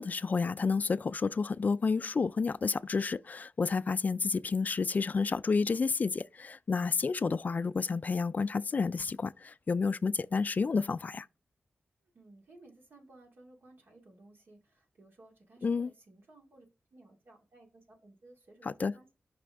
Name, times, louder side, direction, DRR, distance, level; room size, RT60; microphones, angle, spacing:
voice 1, 0.0-11.3 15.6-15.9 18.6-18.9, left 4 dB, 45° left, 0.3 m, -30 dB
voice 2, 12.1-16.7 16.9-19.1, right 2 dB, 75° right, 2.2 m, -58 dB
6.0 x 5.5 x 3.4 m
cardioid pair, 70°, 4 cm